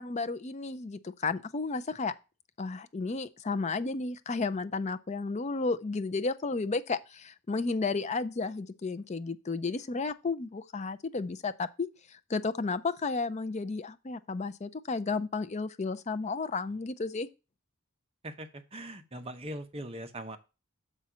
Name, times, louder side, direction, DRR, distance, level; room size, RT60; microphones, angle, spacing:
voice 1, 0.0-2.1 2.6-17.3, left 3 dB, 30° left, 0.5 m, -33 dB
voice 2, 18.2-20.4, right 1 dB, 25° right, 0.9 m, -41 dB
6.8 x 4.3 x 6.1 m
head